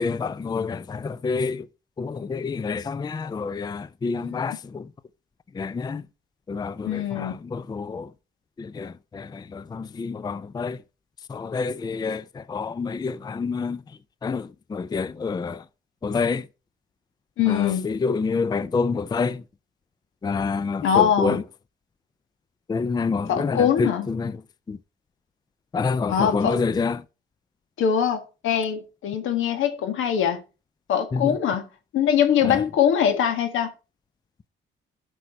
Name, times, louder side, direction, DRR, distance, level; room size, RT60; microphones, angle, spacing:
voice 1, 0.0-1.7 2.0-4.9 5.5-6.1 6.5-8.1 8.6-10.8 11.3-15.6 16.0-16.5 17.4-19.4 20.2-21.4 22.7-24.4 24.7-24.8 25.7-27.0 31.1-31.4 32.4-32.6, left 4 dB, 20° left, 0.4 m, -28 dB
voice 2, 4.2-4.6 6.8-7.4 17.4-17.9 20.8-21.4 23.3-24.1 26.1-26.6 27.8-30.4 30.9-31.7 31.9-33.7, left 8 dB, 80° left, 1.9 m, -22 dB
12.0 x 6.1 x 4.3 m
cardioid pair, 90°, 20 cm